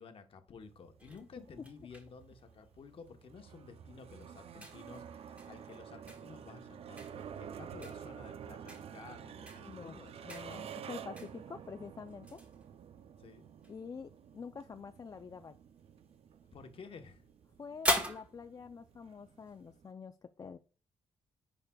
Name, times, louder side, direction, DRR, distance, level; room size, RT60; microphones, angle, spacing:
voice 1, 0.0-10.8 13.2-13.5 16.5-17.2, left 5 dB, 45° left, 0.9 m, -53 dB
sound 1, 0.6-19.9, right 8 dB, 50° right, 0.4 m, -50 dB
sound 2, 1.0-19.8, equal, 10° right, 1.4 m, -44 dB
voice 2, 9.6-10.0 10.3-12.4 13.7-15.5 17.6-20.6, left 5 dB, 30° left, 0.3 m, -47 dB
10.0 x 4.9 x 2.2 m
cardioid pair, 125°, 13 cm